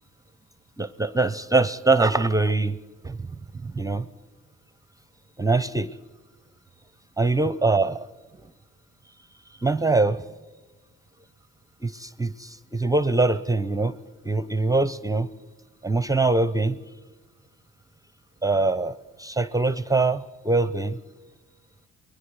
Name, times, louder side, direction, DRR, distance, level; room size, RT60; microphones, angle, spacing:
voice 1, 0.8-2.8 3.0-3.2 3.6-4.1 5.4-5.9 7.2-8.0 9.6-10.2 11.8-13.9 14.2-15.3 15.8-16.8 18.4-21.0, right 3 dB, 10° right, 15 dB, 0.6 m, -23 dB
28.5 x 21.0 x 4.8 m, 1.2 s
cardioid pair, 90°, 30 cm